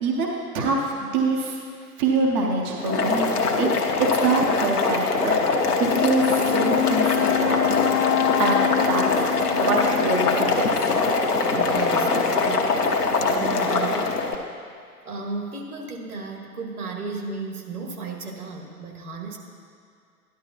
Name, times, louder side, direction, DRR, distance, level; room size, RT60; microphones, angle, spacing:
voice 1, 0.0-1.6 2.0-3.7 4.0-5.4 5.8-7.9 8.4-9.1 9.5-10.9, right 3 dB, 20° right, 0 dB, 0.6 m, -25 dB
Boiling, 2.8-14.3, left 4 dB, 75° left, 1.1 m, -23 dB
Wind instrument woodwind instrument, 5.8-10.7, left 14 dB, 50° left, 0.6 m, -26 dB
voice 2, 11.5-14.3 15.1-19.4, right 4 dB, 70° right, 1 dB, 1.7 m, -34 dB
13.0 x 11.0 x 2.8 m, 2.3 s
figure-of-eight pair, 110°, 47 cm